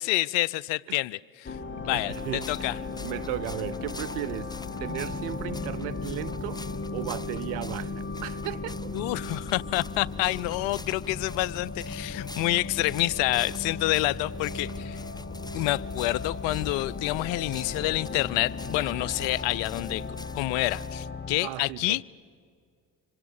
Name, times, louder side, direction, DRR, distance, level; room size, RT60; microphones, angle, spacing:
voice 1, 0.0-1.6 1.8-2.8 8.9-15.0 15.5-20.0 20.3-22.0, left 18 dB, 75° left, 0.6 m, -28 dB
sound 1, 1.5-21.4, left 3 dB, 25° left, 1.9 m, -36 dB
voice 2, 1.8-4.5 4.8-6.6 6.9-8.9 21.4-22.0, right 17 dB, 85° right, 0.6 m, -36 dB
sound 2, 2.1-21.1, left 2 dB, 10° left, 0.7 m, -48 dB
26.0 x 24.0 x 7.1 m
hypercardioid pair, 50°, 43 cm